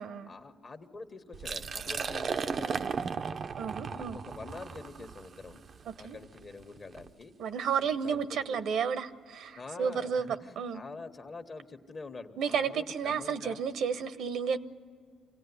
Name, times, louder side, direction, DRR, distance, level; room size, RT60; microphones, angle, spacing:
voice 1, 0.2-3.4 3.8-5.6 6.0-7.3 7.8-8.2 9.5-13.6, left 3 dB, 40° left, 6 dB, 1.5 m, -46 dB
Liquid, 1.3-7.1, right 5 dB, 50° right, 0.6 m, -36 dB
voice 2, 3.6-4.2 5.9-6.2 7.4-10.3 10.6-10.8 12.4-14.6, right 6 dB, 75° right, 12 dB, 0.9 m, -32 dB
26.0 x 17.5 x 9.8 m, 2.2 s
cardioid pair, 90°, 0 cm